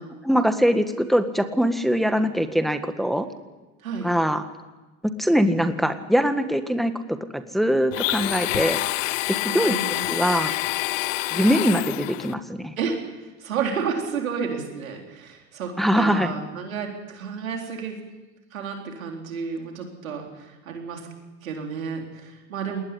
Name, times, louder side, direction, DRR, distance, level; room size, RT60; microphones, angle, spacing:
voice 1, 0.2-3.3 4.0-4.4 5.2-6.9 7.3-8.8 9.5-9.7 10.1-10.5 11.3-12.7 15.8-16.3, equal, ahead, 8 dB, 1.7 m, -22 dB
Domestic sounds home sounds, 7.9-12.3, left 19 dB, 70° left, 0.8 m, -27 dB
voice 2, 9.4-10.1 11.3-11.5 12.8-18.0 18.5-21.1 21.4-22.8, right 6 dB, 90° right, 2 dB, 4.1 m, -31 dB
20.5 x 18.5 x 9.9 m, 1.2 s
hypercardioid pair, 85°, 40 cm